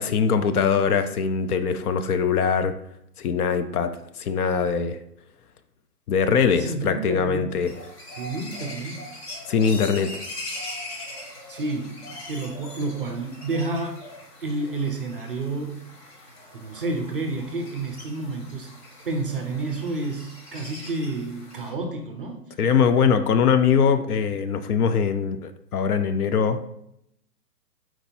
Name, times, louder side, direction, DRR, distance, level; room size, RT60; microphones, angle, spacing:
voice 1, 0.0-2.7 3.2-5.0 6.1-7.8 9.5-10.1 22.6-26.7, left 6 dB, 65° left, 10 dB, 0.6 m, -22 dB
voice 2, 6.6-7.5 8.1-9.1 11.3-14.0 14.4-15.8 16.5-18.7 19.0-22.4, right 2 dB, 35° right, 4 dB, 0.4 m, -30 dB
sound 1, 7.6-21.7, left 1 dB, 40° left, 1.4 m, -41 dB
4.4 x 2.6 x 4.2 m, 0.76 s
hypercardioid pair, 145°, 49 cm